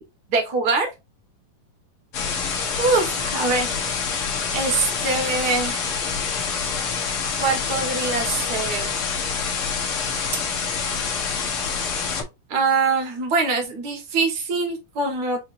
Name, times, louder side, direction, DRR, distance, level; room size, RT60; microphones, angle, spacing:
voice 1, 0.3-0.9 2.8-3.8 4.5-5.9 7.4-8.9 12.5-15.4, right 4 dB, 60° right, 1.0 m, -23 dB
sound 1, 2.1-12.2, left 5 dB, 65° left, 1.4 m, -26 dB
6.2 x 2.9 x 2.5 m
omnidirectional pair, 4.0 m